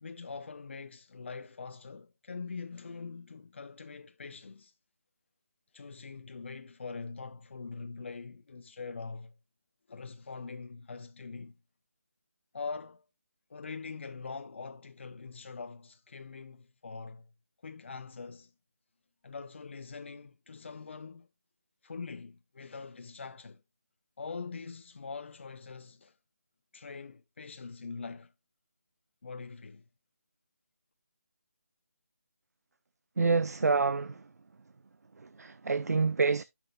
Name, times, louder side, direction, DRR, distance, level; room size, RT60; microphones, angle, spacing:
voice 1, 0.0-4.7 5.7-9.4 9.9-11.6 12.5-13.1 13.5-17.3 17.6-18.5 19.2-21.3 21.8-23.6 24.2-26.2 26.7-28.3 29.2-29.8, left 4 dB, 45° left, 0.6 m, -43 dB
voice 2, 33.2-34.3 35.2-36.4, right 4 dB, 85° right, 0.5 m, -27 dB
11.0 x 6.0 x 2.3 m
figure-of-eight pair, 170°, 8 cm